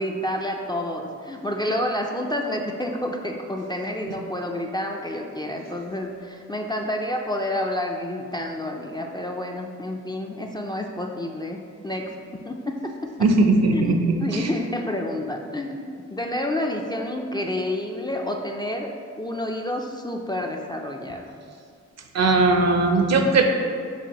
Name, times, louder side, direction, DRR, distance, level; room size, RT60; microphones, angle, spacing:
voice 1, 0.0-12.1 12.5-13.3 13.7-21.4, left 1 dB, 15° left, 2 dB, 0.4 m, -29 dB
voice 2, 13.2-14.2 22.1-23.4, right 3 dB, 60° right, 4 dB, 0.6 m, -18 dB
7.0 x 2.6 x 2.9 m, 2.2 s
cardioid pair, 55°, 30 cm